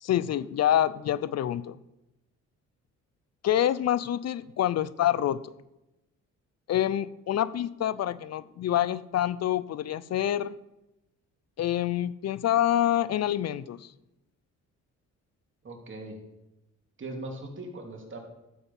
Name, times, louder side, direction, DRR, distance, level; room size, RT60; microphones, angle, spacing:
voice 1, 0.0-1.8 3.4-5.5 6.7-10.6 11.6-13.9, left 11 dB, 60° left, 16 dB, 0.6 m, -27 dB
voice 2, 15.6-16.2 17.0-18.2, right 2 dB, 40° right, 1 dB, 3.0 m, -39 dB
12.5 x 7.9 x 5.6 m, 0.92 s
cardioid pair, 90°, 30 cm